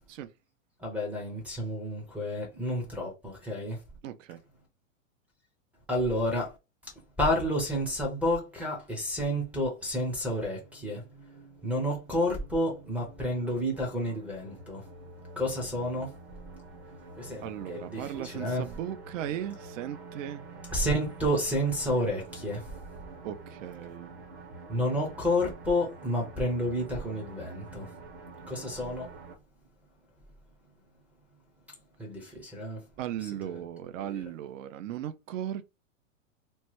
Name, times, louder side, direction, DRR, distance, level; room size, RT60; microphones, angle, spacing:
voice 1, 0.8-3.8 5.9-6.6 6.8-6.9 7.2-11.1 11.6-14.9 15.4-16.1 17.2-18.7 20.7-22.7 24.7-27.9 28.5-29.2 32.0-32.9 33.4-33.6 33.9-34.2, left 1 dB, 5° right, 0.4 m, -30 dB
voice 2, 4.0-4.4 17.4-20.7 23.2-24.1 33.0-35.6, right 11 dB, 70° right, 0.5 m, -37 dB
sound 1, 10.4-29.3, right 3 dB, 35° right, 0.7 m, -47 dB
2.9 x 2.1 x 3.0 m
hypercardioid pair, 135°, 40 cm